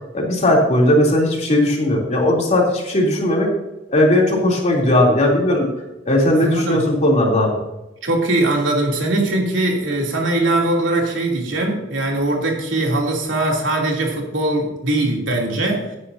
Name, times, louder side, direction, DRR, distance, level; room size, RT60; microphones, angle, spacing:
voice 1, 0.1-3.5 3.9-5.7 6.1-7.6, left 1 dB, 35° left, -2 dB, 3.3 m, -17 dB
voice 2, 6.4-6.8 8.0-16.0, right 2 dB, 70° right, -1 dB, 3.1 m, -21 dB
16.5 x 9.9 x 2.8 m, 0.99 s
head